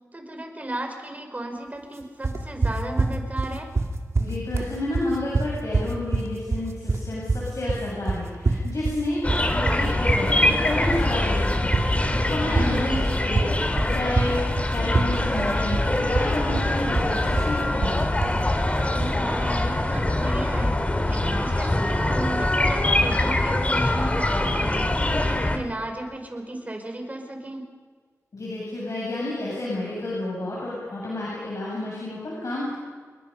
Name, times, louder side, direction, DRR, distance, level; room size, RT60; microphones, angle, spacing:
voice 1, 0.1-3.7 12.5-12.9 18.9-20.8 21.0-27.7, right 1 dB, 30° right, 4 dB, 4.9 m, -34 dB
sound 1, 2.2-19.2, right 3 dB, 60° right, 2.2 m, -26 dB
voice 2, 4.2-9.2 9.5-11.8 12.2-18.0 28.3-32.7, left 1 dB, 75° left, -5 dB, 7.8 m, -30 dB
sound 2, 9.2-25.6, left 1 dB, 25° left, 2.5 m, -23 dB
29.5 x 22.5 x 5.6 m, 1.5 s
wide cardioid pair, 95°, 6 cm